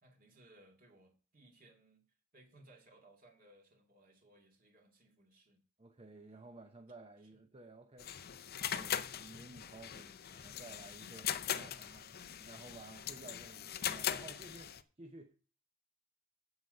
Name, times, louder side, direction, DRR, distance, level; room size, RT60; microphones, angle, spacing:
voice 1, 0.0-2.0 2.3-5.6 7.3-7.4, right 1 dB, 45° right, 2.3 m, -63 dB
voice 2, 5.8-8.1 8.6-15.4, right 2 dB, 30° right, 0.8 m, -54 dB
sound 1, 8.0-14.8, left 9 dB, 50° left, 0.6 m, -40 dB
8.0 x 8.0 x 5.5 m
head